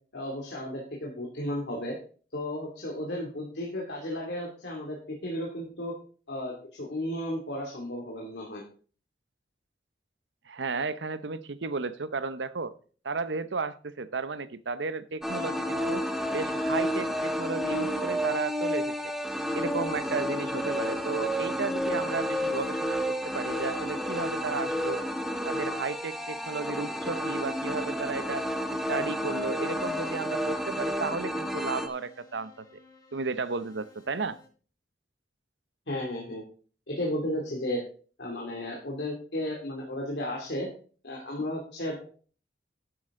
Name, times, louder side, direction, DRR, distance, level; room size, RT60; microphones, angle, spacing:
voice 1, 0.1-1.9 2.3-5.9 6.3-8.6 35.9-36.4 36.9-37.8 38.2-40.7 41.0-42.0, left 1 dB, 70° left, -2 dB, 2.6 m, -34 dB
voice 2, 10.5-12.8 13.0-18.9 19.5-25.0 25.4-28.4 28.7-32.7 33.1-34.4, right 4 dB, 85° right, 15 dB, 0.8 m, -34 dB
sound 1, 15.2-31.9, equal, ahead, 1.1 m, -31 dB
Keyboard (musical), 22.6-34.5, left 3 dB, 20° left, 5.9 m, -57 dB
11.5 x 8.6 x 3.7 m, 0.41 s
head